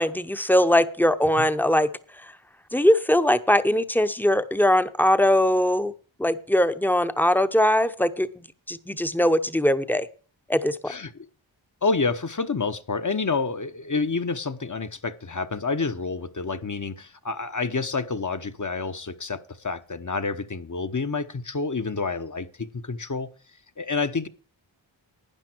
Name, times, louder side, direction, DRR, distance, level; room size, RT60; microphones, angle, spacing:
voice 1, 0.0-1.9 2.7-5.9 6.2-8.3 8.7-10.1 10.5-10.9, left 1 dB, 5° left, 11 dB, 0.8 m, -21 dB
voice 2, 10.9-11.3 11.8-23.3 23.8-24.3, left 4 dB, 40° left, 10 dB, 1.0 m, -28 dB
12.0 x 9.7 x 4.5 m, 0.39 s
wide cardioid pair, 75°, 47 cm